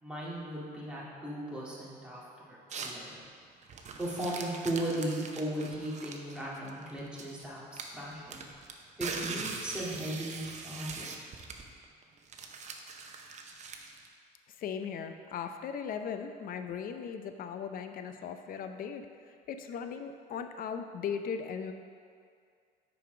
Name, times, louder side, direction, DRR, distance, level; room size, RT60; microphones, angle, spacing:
voice 1, 0.0-3.2 4.0-8.4 9.0-11.2, right 1 dB, 5° right, -7 dB, 2.0 m, -37 dB
sound 1, 2.7-3.0 3.6-7.4 7.8-14.1, right 5 dB, 45° right, 0.7 m, -42 dB
voice 2, 14.5-21.7, left 7 dB, 55° left, 7 dB, 0.6 m, -38 dB
6.8 x 5.0 x 5.0 m, 2.2 s
cardioid pair, 110°, 17 cm